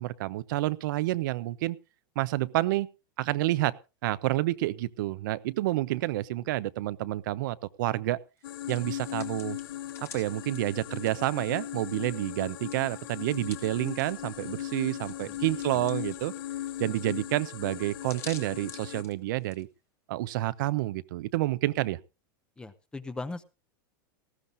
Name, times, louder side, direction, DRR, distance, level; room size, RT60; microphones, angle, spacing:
voice 1, 0.0-1.8 2.2-2.9 3.2-3.7 4.0-8.2 8.7-9.6 10.0-16.3 16.8-19.7 20.1-22.0, right 17 dB, 65° right, 16 dB, 0.7 m, -29 dB
sound 1, 8.4-19.0, left 12 dB, 80° left, 0.6 m, -38 dB
Hands, 8.4-12.1 12.4-19.6, left 7 dB, 25° left, 1.2 m, -50 dB
voice 2, 22.6-23.4, left 3 dB, 5° left, 12 dB, 0.7 m, -39 dB
19.0 x 14.5 x 2.6 m, 0.30 s
supercardioid pair, 155°, 12 cm